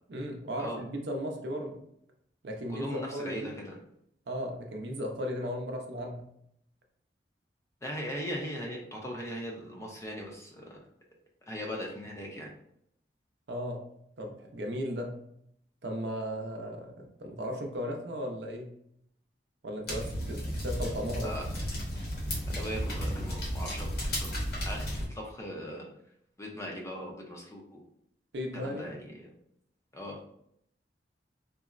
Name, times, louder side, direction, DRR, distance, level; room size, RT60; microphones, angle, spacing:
voice 1, 0.1-1.8 2.4-3.6 4.3-6.2 13.5-13.8 14.2-15.1 15.8-18.7 19.6-21.3 28.3-28.9, equal, 70° right, 2 dB, 0.5 m, -36 dB
voice 2, 2.7-3.8 7.8-10.8 11.5-12.5 21.2-21.5 22.3-25.9 26.4-27.8 28.5-29.3 29.9-30.2, equal, 15° left, -1 dB, 0.5 m, -39 dB
sound 1, 19.9-25.1, equal, 60° left, 1.0 m, -33 dB
3.8 x 2.0 x 2.4 m, 0.71 s
head